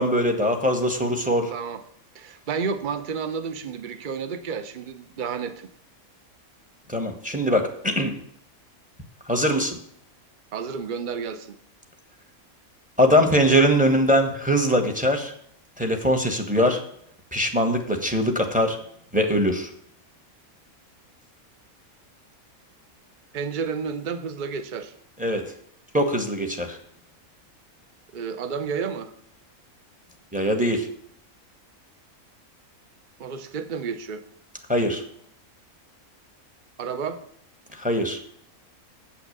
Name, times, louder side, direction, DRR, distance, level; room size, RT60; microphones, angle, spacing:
voice 1, 0.0-1.5 6.9-8.1 9.3-9.8 13.0-15.3 15.8-16.8 17.3-18.8 19.1-19.7 25.2-25.4 25.9-26.8 30.3-30.9 34.7-35.0 37.8-38.2, equal, 5° right, 5 dB, 1.2 m, -22 dB
voice 2, 1.5-1.8 2.1-5.7 10.5-11.6 23.3-24.9 28.1-29.1 33.2-34.2 36.8-37.2, right 6 dB, 40° right, 10 dB, 0.8 m, -31 dB
8.5 x 5.9 x 6.6 m, 0.66 s
omnidirectional pair, 1.5 m